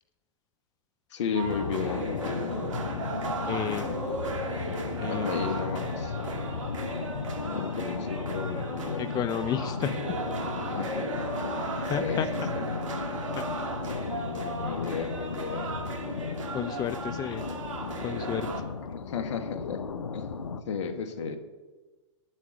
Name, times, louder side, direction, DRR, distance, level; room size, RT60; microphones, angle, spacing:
voice 1, 1.1-2.6 5.1-6.2 7.5-9.0 10.6-11.2 11.6-11.7 12.0-12.2 14.3-15.8 18.9-19.8 20.1-20.3 20.7-21.4, left 6 dB, 70° left, 7 dB, 1.5 m, -34 dB
sound 1, 1.3-18.6, right 3 dB, 80° right, 1.9 m, -36 dB
sound 2, 1.4-20.6, left 5 dB, 90° left, 0.8 m, -35 dB
voice 2, 3.5-3.9 5.0-5.3 9.0-10.2 11.8-12.3 13.3-13.6 16.5-17.5 18.0-18.6, left 9 dB, 25° left, 11 dB, 0.5 m, -32 dB
10.0 x 7.4 x 7.8 m, 1.2 s
hypercardioid pair, 105°, 16 cm